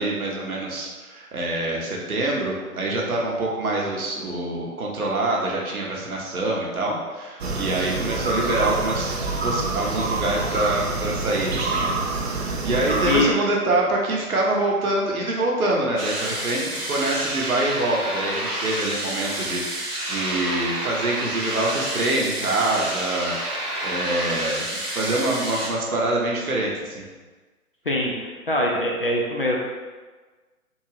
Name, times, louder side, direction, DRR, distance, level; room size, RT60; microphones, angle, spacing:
voice 1, 0.0-12.2 12.6-27.0, right 2 dB, 70° right, -2 dB, 1.0 m, -25 dB
sound 1, 7.4-13.2, right 3 dB, 45° right, 0.5 m, -26 dB
sound 2, 16.0-25.7, right 1 dB, 90° right, 1.3 m, -29 dB
voice 2, 27.9-29.6, left 1 dB, 40° left, -2 dB, 0.4 m, -23 dB
3.6 x 2.5 x 3.2 m, 1.3 s
figure-of-eight pair, 130°, 45 cm